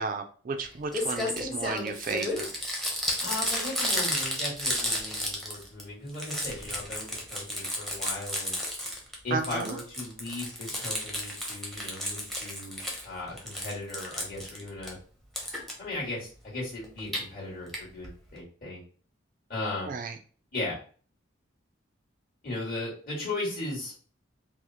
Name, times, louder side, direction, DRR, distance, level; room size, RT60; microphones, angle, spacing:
voice 1, 0.0-2.5 9.3-9.8 19.9-20.1, right 4 dB, 40° right, 6 dB, 0.3 m, -33 dB
Crumpling crinkling, 0.6-0.7 0.9-5.8 6.1-9.1 9.4-13.1 13.4-14.9 15.4-15.7 16.8-17.2 17.7-17.8 18.0-18.1 18.4-18.5, equal, ahead, 0.7 m, -32 dB
voice 2, 3.2-8.6 9.2-15.0 15.8-18.8 19.5-19.9 20.5-20.8 22.4-23.9, left 2 dB, 45° left, -6 dB, 1.8 m, -37 dB
4.7 x 2.0 x 2.8 m, 0.42 s
head